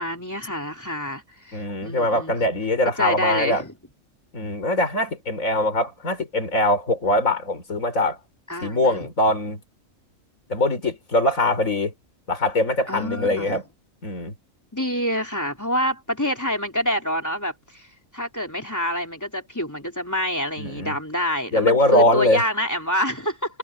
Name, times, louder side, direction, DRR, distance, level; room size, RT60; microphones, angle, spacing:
voice 1, 0.0-2.4 2.8-3.7 8.5-9.1 12.9-13.6 14.7-17.9 18.1-23.6, equal, 10° left, 3.2 m, -27 dB
voice 2, 1.5-3.6 4.3-8.2 8.6-9.6 10.5-11.9 12.3-13.6 14.0-14.3 20.6-21.0 21.5-22.4, left 1 dB, 80° left, 4.9 m, -22 dB
omnidirectional pair, 1.4 m